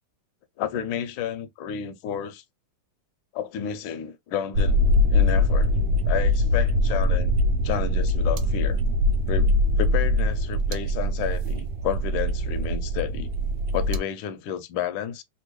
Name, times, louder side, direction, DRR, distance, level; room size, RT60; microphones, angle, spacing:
voice 1, 0.6-2.4 3.3-4.8 5.1-7.4 7.6-8.8 9.3-9.5 9.8-13.3 13.7-15.2, left 9 dB, 75° left, 1.3 m, -31 dB
sound 1, 4.5-14.0, left 1 dB, 75° right, 1.0 m, -22 dB
3.4 x 2.6 x 3.0 m
omnidirectional pair, 2.4 m